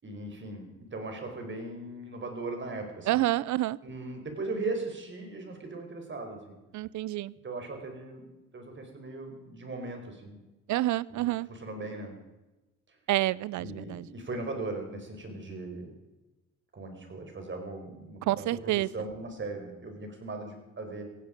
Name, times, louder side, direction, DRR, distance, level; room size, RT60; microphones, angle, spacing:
voice 1, 0.0-3.2 3.8-6.6 7.4-10.4 11.1-12.2 12.9-13.0 13.6-15.9 16.7-21.0, right 2 dB, 40° right, 4 dB, 4.7 m, -38 dB
voice 2, 3.1-3.8 6.7-7.3 10.7-11.5 13.1-14.0 18.3-18.9, right 16 dB, 75° right, 23 dB, 0.6 m, -28 dB
17.0 x 16.0 x 5.2 m, 1.1 s
cardioid pair, 90°, 30 cm